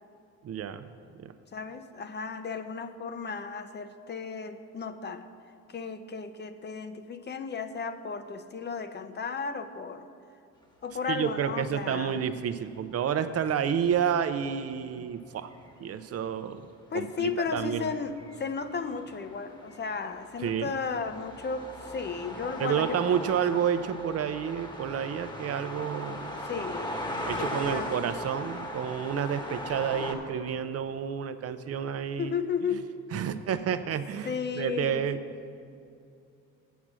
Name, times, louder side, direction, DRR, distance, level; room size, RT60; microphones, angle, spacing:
voice 1, 0.4-0.9 1.2-1.3 11.1-15.5 15.8-16.7 16.9-17.9 20.4-20.8 22.6-26.3 27.2-32.3 32.7-32.8 33.1-35.2, right 8 dB, 55° right, 11 dB, 0.5 m, -30 dB
voice 2, 1.5-5.3 5.7-10.1 10.8-12.2 16.9-22.9 26.5-27.0 27.4-28.0 32.2-32.9 34.3-35.1, left 5 dB, 35° left, 9 dB, 0.6 m, -34 dB
sound 1, 13.6-14.0 15.1-16.2 16.9-30.1, left 1 dB, 15° left, 1.2 m, -38 dB
8.2 x 6.0 x 7.4 m, 2.5 s
cardioid pair, 90°, 30 cm